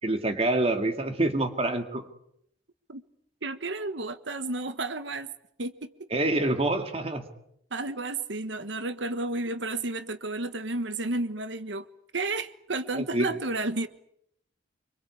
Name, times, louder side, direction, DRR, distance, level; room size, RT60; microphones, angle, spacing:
voice 1, 0.0-2.1 6.1-7.2 12.9-13.3, right 2 dB, 30° right, 7 dB, 2.2 m, -26 dB
voice 2, 3.4-5.3 5.6-6.1 7.7-11.8 12.1-13.9, right 2 dB, 70° right, 11 dB, 1.4 m, -32 dB
26.5 x 25.5 x 8.5 m, 0.72 s
head